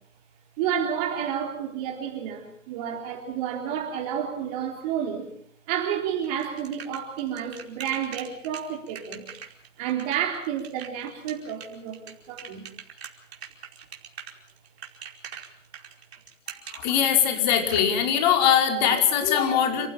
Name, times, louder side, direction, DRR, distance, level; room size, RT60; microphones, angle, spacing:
voice 1, 0.6-5.3 5.7-9.3 9.8-12.7, right 9 dB, 30° right, 1 dB, 3.9 m, -30 dB
sound 1, 6.2-17.8, right 7 dB, 55° right, 4.9 m, -42 dB
voice 2, 16.6-19.9, left 8 dB, 35° left, 4 dB, 5.0 m, -21 dB
29.5 x 15.5 x 7.2 m, 0.64 s
figure-of-eight pair, 130°, 38 cm